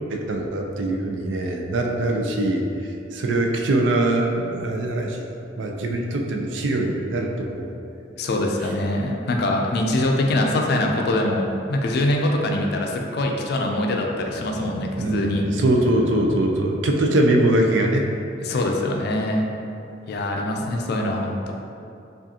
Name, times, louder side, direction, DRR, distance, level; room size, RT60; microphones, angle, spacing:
voice 1, 0.1-2.7 3.1-5.2 5.6-7.7 15.0-18.1, right 1 dB, 80° right, 2 dB, 0.4 m, -22 dB
voice 2, 8.2-15.4 18.4-19.5 20.1-21.5, left 1 dB, 60° left, 1 dB, 0.4 m, -23 dB
sound 1, 13.5-17.4, left 1 dB, 20° left, 0.7 m, -39 dB
4.9 x 2.4 x 2.7 m, 2.7 s
head